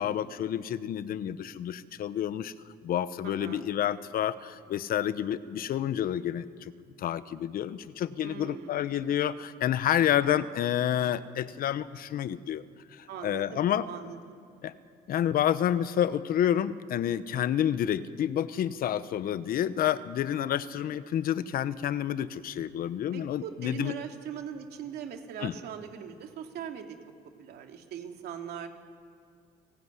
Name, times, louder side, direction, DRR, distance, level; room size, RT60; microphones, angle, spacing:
voice 1, 0.0-2.5 2.8-6.7 7.0-12.6 12.9-13.9 14.6-14.7 15.1-23.9 25.4-25.5, left 10 dB, 60° left, 14 dB, 1.0 m, -29 dB
voice 2, 3.2-3.6 8.2-8.9 13.1-14.2 23.1-27.0 27.4-28.7, right 8 dB, 75° right, 4 dB, 2.7 m, -40 dB
30.0 x 17.5 x 9.7 m, 2.3 s
cardioid pair, 110°, 17 cm